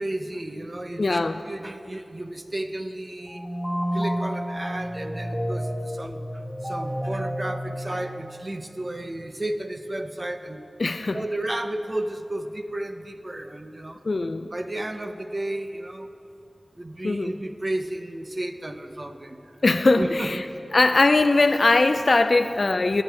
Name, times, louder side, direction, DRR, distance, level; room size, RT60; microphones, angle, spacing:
voice 1, 0.0-3.4 3.9-10.6 11.1-14.0 14.5-16.1 16.8-19.6 20.0-20.4, right 1 dB, 35° right, 7 dB, 0.6 m, -33 dB
voice 2, 1.0-1.4 10.8-11.2 14.1-14.5 17.0-17.3 19.6-20.4 20.7-23.0, left 3 dB, 60° left, 8 dB, 0.3 m, -20 dB
sound 1, 3.2-8.7, equal, ahead, 1.7 m, -30 dB
22.0 x 8.4 x 3.4 m, 2.7 s
wide cardioid pair, 70°, 0 cm